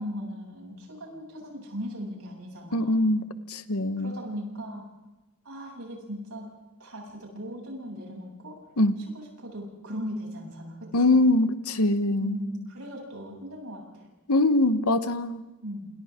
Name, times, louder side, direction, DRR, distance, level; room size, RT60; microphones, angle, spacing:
voice 1, 0.0-3.0 4.0-4.8 5.4-6.5 6.8-8.6 9.1-11.3 12.2-14.1 15.6-15.9, equal, 75° right, -1 dB, 7.8 m, -38 dB
voice 2, 2.7-4.2 8.8-9.0 10.9-12.4 14.3-15.4, left 2 dB, 90° left, 11 dB, 1.2 m, -23 dB
29.0 x 28.0 x 3.7 m, 1.1 s
head